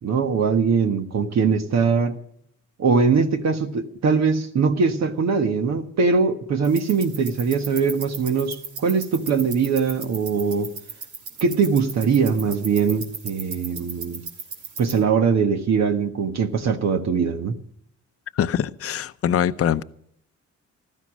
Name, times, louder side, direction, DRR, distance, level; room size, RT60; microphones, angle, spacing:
voice 1, 0.0-2.2 2.8-10.7 11.4-14.2 14.8-17.6, right 5 dB, 60° right, 1.4 m, -21 dB
sound 1, 6.6-15.0, right 5 dB, 80° right, 3.2 m, -37 dB
voice 2, 18.3-19.8, left 9 dB, 50° left, 0.7 m, -23 dB
15.5 x 13.0 x 6.2 m
cardioid pair, 90°, 30 cm